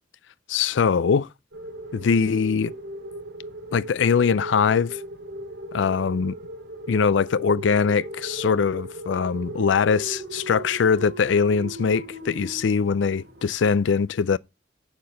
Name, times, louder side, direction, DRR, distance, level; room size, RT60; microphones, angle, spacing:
voice 1, 0.5-1.3 1.9-2.7 3.7-5.0 5.7-6.3 6.9-14.4, left 5 dB, 85° left, 0.4 m, -22 dB
sound 1, 1.5-13.5, right 1 dB, 70° right, 2.9 m, -38 dB
7.7 x 6.7 x 6.4 m
head